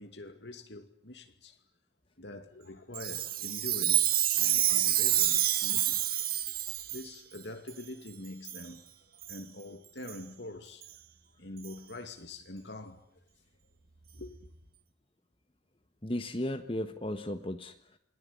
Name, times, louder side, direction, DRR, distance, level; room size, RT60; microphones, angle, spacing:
voice 1, 0.0-1.6 2.2-6.0 6.9-8.9 9.1-10.9 11.4-13.2 14.1-14.5, left 2 dB, 70° left, 2.5 m, -45 dB
Chime, 2.9-7.0 7.7-7.8 8.4-8.6 9.2-9.4 10.1-10.2 10.8-10.9 11.6-11.7, right 13 dB, 50° right, 2.0 m, -28 dB
voice 2, 16.0-18.0, left 1 dB, 30° left, 1.4 m, -35 dB
28.0 x 21.0 x 9.9 m
head